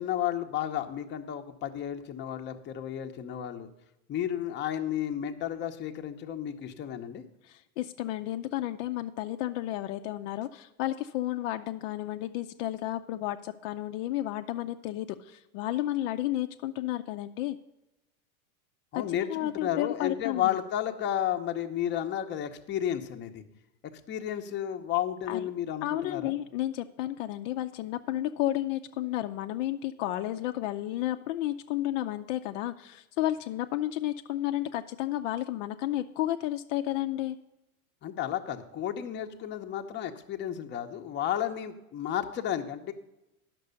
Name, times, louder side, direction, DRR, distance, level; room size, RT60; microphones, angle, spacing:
voice 1, 0.0-3.7 4.1-7.2 18.9-23.4 24.1-26.3 38.0-42.9, left 10 dB, 25° left, 5 dB, 0.8 m, -32 dB
voice 2, 7.4-17.6 18.9-20.6 25.3-25.5 25.8-37.4, left 14 dB, 60° left, 7 dB, 0.6 m, -32 dB
10.5 x 6.1 x 6.7 m, 0.94 s
supercardioid pair, 130°, 43 cm